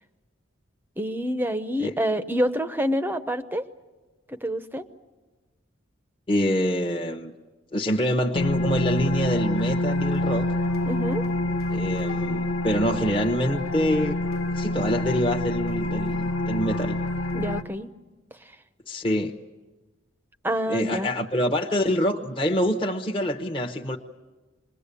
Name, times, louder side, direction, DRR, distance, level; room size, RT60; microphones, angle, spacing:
voice 1, 1.0-3.6 4.3-4.8 10.9-11.2 17.3-17.9 20.4-21.2, equal, 10° right, 10 dB, 0.7 m, -27 dB
voice 2, 6.3-7.3 7.7-10.5 11.7-14.2 14.5-17.0 18.9-19.3 20.7-24.0, equal, 25° left, 0 dB, 1.0 m, -25 dB
sound 1, 8.3-17.6, left 1 dB, 90° left, 1.0 m, -27 dB
26.5 x 22.0 x 8.4 m, 1.2 s
head